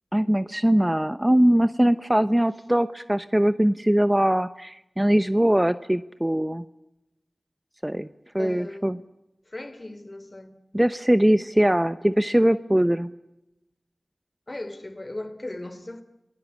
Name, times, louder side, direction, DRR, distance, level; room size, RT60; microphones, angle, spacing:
voice 1, 0.1-6.6 7.8-8.1 8.3-9.0 10.7-13.1, right 1 dB, 15° right, 0.9 m, -21 dB
voice 2, 8.4-8.9 9.5-10.6 14.5-16.0, left 1 dB, 35° left, 3.2 m, -37 dB
29.0 x 19.5 x 8.5 m
wide cardioid pair, 50°, 0 cm